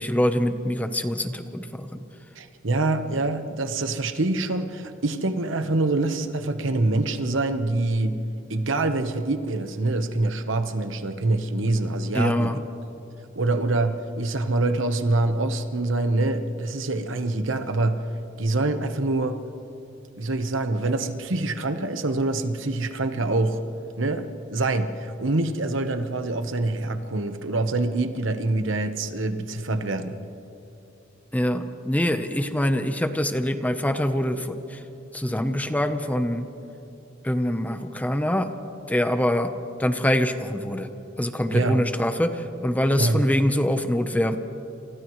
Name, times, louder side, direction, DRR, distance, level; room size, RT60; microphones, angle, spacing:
voice 1, 0.0-2.0 12.1-12.6 31.3-34.8 35.1-36.5 37.2-38.5 38.9-39.5 39.8-40.9 41.2-44.4, left 1 dB, 10° left, 8 dB, 0.8 m, -24 dB
voice 2, 2.4-8.2 8.5-12.5 13.3-18.0 18.4-19.4 20.2-23.6 24.0-30.2 41.5-41.8 43.0-43.2, right 2 dB, 70° right, 8 dB, 1.1 m, -25 dB
29.5 x 28.0 x 3.2 m, 2.9 s
head